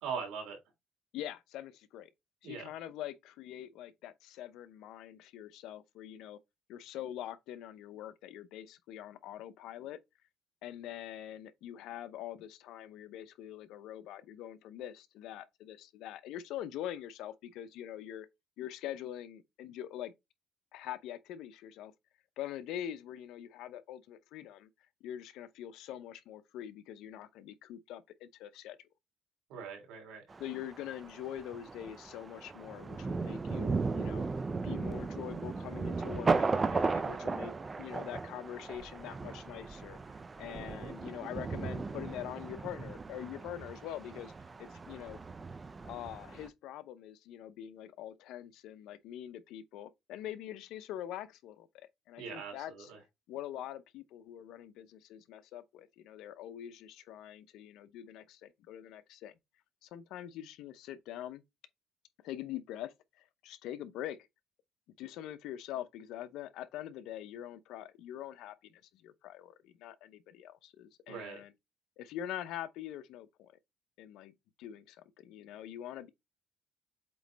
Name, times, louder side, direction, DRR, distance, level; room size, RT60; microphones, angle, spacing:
voice 1, 0.0-0.6 2.4-2.7 29.5-30.2 52.2-53.0 71.1-71.4, right 6 dB, 90° right, 3.1 m, -41 dB
voice 2, 1.1-2.1 2.4-6.4 6.7-10.0 10.6-18.3 18.6-20.1 20.7-21.9 22.4-24.7 25.0-28.9 30.4-34.3 34.6-40.0 40.4-44.3 44.6-45.2 45.8-52.9 53.3-59.3 59.8-61.4 62.2-64.2 65.0-71.5 72.0-73.5 74.0-76.1, left 11 dB, 80° left, 0.7 m, -44 dB
Thunder, 30.3-46.5, right 4 dB, 25° right, 0.5 m, -36 dB
7.9 x 3.1 x 3.9 m
cardioid pair, 115°, 0 cm